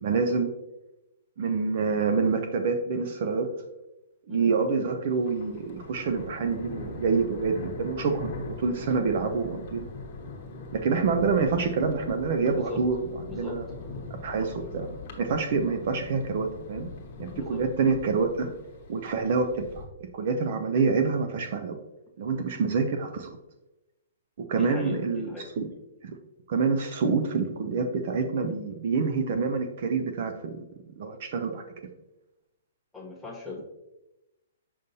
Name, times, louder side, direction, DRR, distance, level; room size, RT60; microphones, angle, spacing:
voice 1, 0.0-0.5 1.4-3.5 4.3-9.9 10.7-13.0 13.3-13.6 14.1-14.9 15.2-16.9 17.2-18.5 18.9-19.9 20.1-21.8 22.2-23.3 24.5-25.7 26.0-26.1 26.5-30.6 31.0-31.6, right 4 dB, 45° right, 7 dB, 0.5 m, -27 dB
Thunder, 5.1-19.8, left 3 dB, 35° left, 1.1 m, -41 dB
voice 2, 13.3-13.6 17.3-17.6 24.5-25.5 32.9-33.6, left 4 dB, 5° left, -4 dB, 0.9 m, -38 dB
6.7 x 5.3 x 2.7 m, 0.95 s
hypercardioid pair, 170°, 0 cm